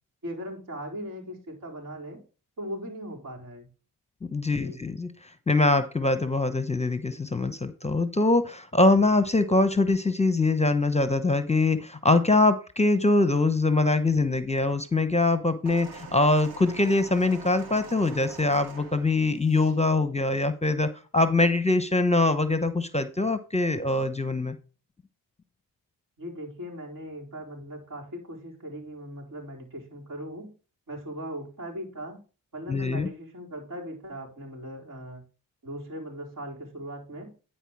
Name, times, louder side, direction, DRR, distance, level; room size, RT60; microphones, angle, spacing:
voice 1, 0.2-2.2 2.6-3.7 4.5-4.8 26.2-30.5 30.9-32.2 32.5-35.2 35.6-37.3, equal, 55° right, -2 dB, 4.3 m, -39 dB
voice 2, 4.3-5.1 5.5-24.6 32.7-33.1, left 2 dB, 15° left, 11 dB, 0.9 m, -23 dB
sound 1, 15.7-19.8 20.7-20.8, right 4 dB, 90° right, 2.1 m, -45 dB
10.0 x 4.5 x 4.7 m, 0.35 s
supercardioid pair, 45°, 39 cm